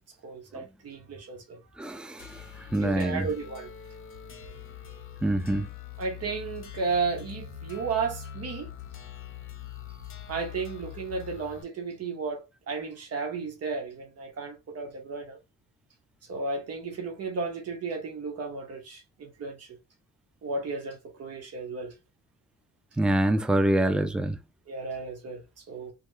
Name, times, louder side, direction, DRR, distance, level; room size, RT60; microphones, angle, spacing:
voice 1, 0.2-1.6 2.7-3.7 6.0-8.7 10.3-15.4 16.3-19.7 20.4-21.9 24.7-25.9, right 4 dB, 55° right, 1.1 m, -33 dB
voice 2, 1.8-2.3 2.7-3.3 5.2-5.7 23.0-24.4, right 1 dB, 5° right, 0.4 m, -25 dB
sound 1, 2.2-11.6, left 9 dB, 45° left, 0.9 m, -43 dB
3.1 x 2.3 x 3.2 m
cardioid pair, 90°, 30 cm